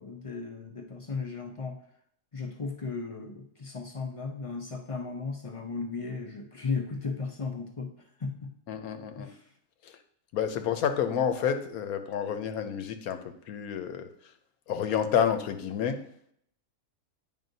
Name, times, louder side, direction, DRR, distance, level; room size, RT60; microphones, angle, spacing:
voice 1, 0.0-1.8 2.3-8.5 9.2-9.5, left 4 dB, 45° left, 3 dB, 0.4 m, -36 dB
voice 2, 8.7-9.3 9.8-10.0 10.3-14.0 14.7-16.0, left 8 dB, 80° left, 8 dB, 1.1 m, -29 dB
9.1 x 5.3 x 2.7 m, 0.68 s
omnidirectional pair, 1.5 m